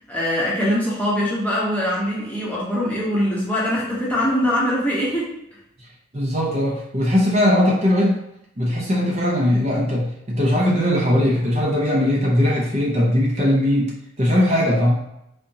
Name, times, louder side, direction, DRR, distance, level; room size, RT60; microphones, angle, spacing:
voice 1, 0.1-5.3, equal, 10° left, -7 dB, 1.0 m, -22 dB
voice 2, 6.1-8.2 8.6-13.9 14.2-14.9, left 1 dB, 35° right, -4 dB, 0.8 m, -19 dB
3.9 x 3.4 x 2.7 m, 0.81 s
head